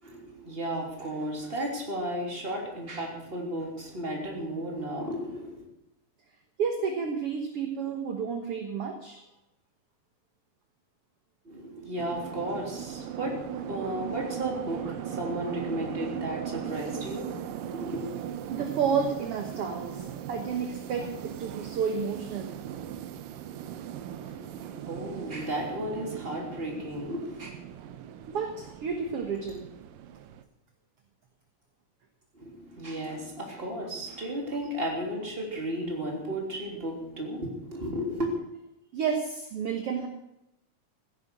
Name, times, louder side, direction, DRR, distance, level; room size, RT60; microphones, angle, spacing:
voice 1, 0.0-5.7 11.4-18.2 24.2-27.5 32.3-38.3, right 1 dB, 15° right, 0 dB, 3.3 m, -34 dB
voice 2, 6.6-9.2 18.5-22.6 28.3-29.7 38.9-40.1, right 6 dB, 55° right, 4 dB, 2.0 m, -31 dB
sound 1, 12.0-30.4, right 9 dB, 85° right, 2.6 m, -39 dB
16.0 x 11.0 x 6.2 m, 0.85 s
omnidirectional pair, 3.8 m